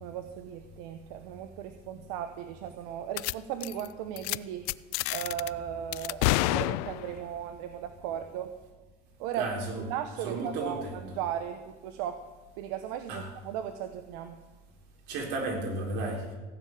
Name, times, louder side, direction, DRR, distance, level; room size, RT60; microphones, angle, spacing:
voice 1, 0.0-4.7 5.1-8.5 9.2-9.5 9.9-12.2 12.6-14.4, right 10 dB, 85° right, 8 dB, 1.0 m, -37 dB
sound 1, 3.2-3.3 3.6-3.9 4.2-4.4 4.7-5.5 5.9-7.3, left 19 dB, 85° left, 0.4 m, -29 dB
voice 2, 9.4-9.9 10.2-11.0 13.1-13.3 15.1-16.3, right 2 dB, 65° right, 1 dB, 4.0 m, -33 dB
15.5 x 6.7 x 9.1 m, 1.2 s
cardioid pair, 155°, 19 cm